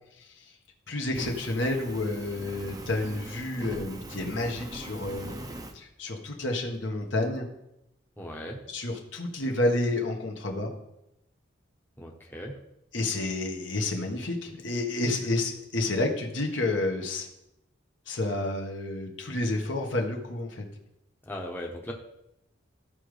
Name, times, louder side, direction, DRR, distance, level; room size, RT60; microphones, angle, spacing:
voice 1, 0.9-5.3 5.7-7.5 8.7-10.7 12.9-17.3 18.1-20.6, left 2 dB, 70° left, 1 dB, 1.4 m, -30 dB
Fire, 1.1-5.7, right 1 dB, 20° right, 0.6 m, -41 dB
voice 2, 8.2-8.6 12.0-12.5 21.3-21.9, left 1 dB, 10° left, -1 dB, 0.9 m, -37 dB
14.5 x 5.2 x 3.3 m, 0.84 s
head